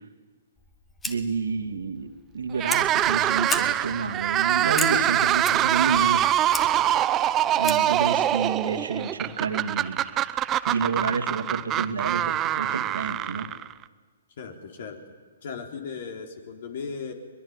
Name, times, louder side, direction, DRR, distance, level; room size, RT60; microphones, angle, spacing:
Fire, 0.6-8.0, left 2 dB, 10° left, 1.7 m, -37 dB
voice 1, 1.1-2.1 2.3-6.6 7.6-10.0 10.7-13.5, right 4 dB, 80° right, 5 dB, 2.5 m, -29 dB
sound 1, 2.5-13.8, right 12 dB, 25° right, 0.7 m, -24 dB
voice 2, 14.4-15.0 15.4-17.1, left 5 dB, 55° left, 4 dB, 3.9 m, -36 dB
22.5 x 21.5 x 9.7 m, 1.5 s
hypercardioid pair, 130°, 0 cm